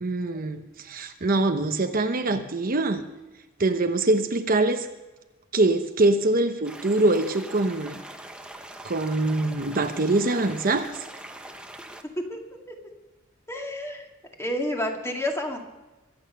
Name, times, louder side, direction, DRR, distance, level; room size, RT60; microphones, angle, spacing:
voice 1, 0.0-3.0 3.6-4.9 5.5-8.0 8.8-10.9, right 2 dB, 45° right, 7 dB, 0.9 m, -24 dB
sound 1, 6.6-12.0, right 1 dB, 5° right, 1.1 m, -42 dB
voice 2, 13.5-14.1 14.4-15.6, left 1 dB, 15° left, 2 dB, 2.1 m, -29 dB
24.0 x 8.9 x 5.6 m, 1.1 s
head